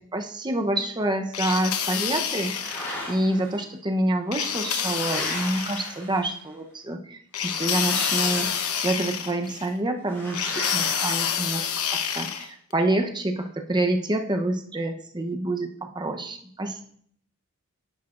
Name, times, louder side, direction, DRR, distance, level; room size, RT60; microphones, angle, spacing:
voice 1, 0.1-2.6 3.1-8.5 8.7-16.8, right 1 dB, 20° right, 5 dB, 0.8 m, -27 dB
sound 1, 1.3-3.1 4.3-6.0 7.3-9.7 10.3-12.5, left 8 dB, 90° left, 0.9 m, -28 dB
sound 2, 2.3-3.5 4.3-6.5 7.6-9.0 10.1-12.0, left 1 dB, 10° left, 3.4 m, -37 dB
10.5 x 9.6 x 2.5 m, 0.62 s
head